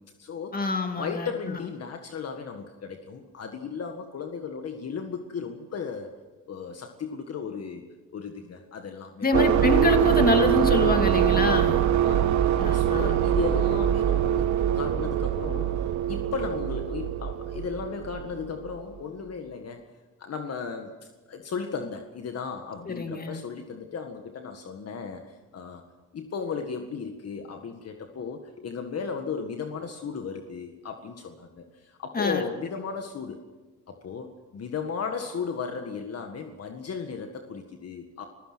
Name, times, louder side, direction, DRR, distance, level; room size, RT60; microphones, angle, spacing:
voice 1, 0.0-0.6 1.0-6.1 6.5-7.8 8.1-9.3 11.5-19.9 20.2-20.9 21.3-25.8 26.1-33.4 33.9-38.2, left 5 dB, 55° left, 5 dB, 1.8 m, -35 dB
voice 2, 0.5-1.6 9.2-11.8 12.6-13.2 22.9-23.4 32.1-32.4, left 3 dB, 30° left, 5 dB, 2.6 m, -26 dB
sound 1, 9.3-18.8, right 10 dB, 70° right, 1.4 m, -23 dB
29.0 x 16.0 x 6.2 m, 1.2 s
cardioid pair, 90°, 30 cm